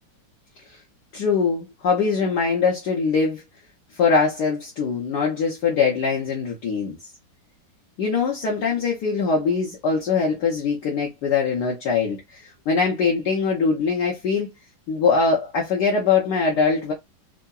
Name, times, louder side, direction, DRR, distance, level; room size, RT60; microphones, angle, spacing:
voice 1, 1.1-3.4 4.0-7.0 8.0-14.5 14.9-16.9, left 5 dB, 65° left, 1.2 m, -22 dB
3.5 x 2.0 x 2.3 m
omnidirectional pair, 2.1 m